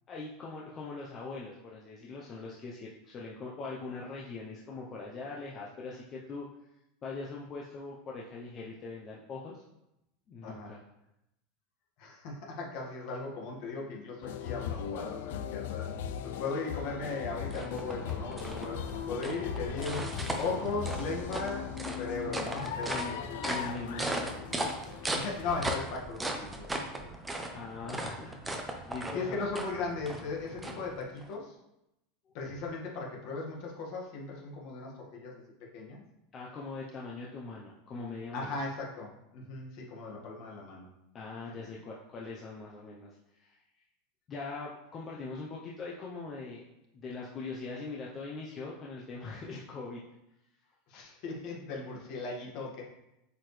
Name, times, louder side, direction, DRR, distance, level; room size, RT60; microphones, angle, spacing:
voice 1, 0.1-6.5 7.0-9.6 10.3-10.8 22.9-23.1 23.4-24.5 26.6-26.8 27.5-29.4 36.3-38.6 41.1-43.6 44.3-46.7 46.9-50.0 50.9-51.0, left 3 dB, 25° left, -3 dB, 0.8 m, -42 dB
voice 2, 10.4-10.7 12.0-15.9 16.2-23.6 25.1-27.1 29.1-31.6 32.3-35.4 35.7-36.0 38.3-40.9 41.6-41.7 50.9-52.8, left 3 dB, 50° left, -2 dB, 1.8 m, -38 dB
sound 1, 14.2-25.8, left 9 dB, 70° left, 0.4 m, -38 dB
sound 2, 16.8-31.3, right 1 dB, 5° right, 0.7 m, -38 dB
7.6 x 4.9 x 3.3 m, 0.87 s
supercardioid pair, 160°, 0 cm